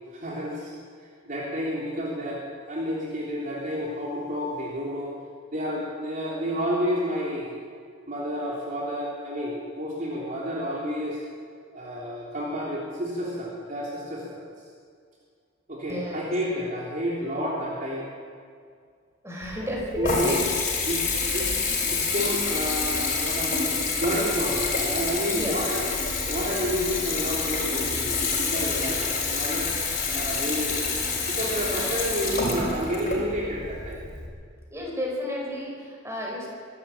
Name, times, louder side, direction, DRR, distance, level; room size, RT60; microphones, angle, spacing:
voice 1, 0.1-0.7 1.0-5.2 5.5-7.6 8.1-11.2 11.7-14.4 15.7-18.1 20.0-20.3 20.9-25.8 26.3-29.7 30.1-34.0, equal, 40° right, -4 dB, 3.5 m, -30 dB
voice 2, 15.9-16.3 19.2-20.4 25.3-25.6 34.7-36.5, left 1 dB, 15° right, -2 dB, 5.6 m, -32 dB
Water tap faucet / Bathtub (filling or washing) / Trickle dribble, 19.4-34.3, left 4 dB, 40° left, 5.5 m, -28 dB
24.0 x 13.0 x 8.8 m, 2.1 s
head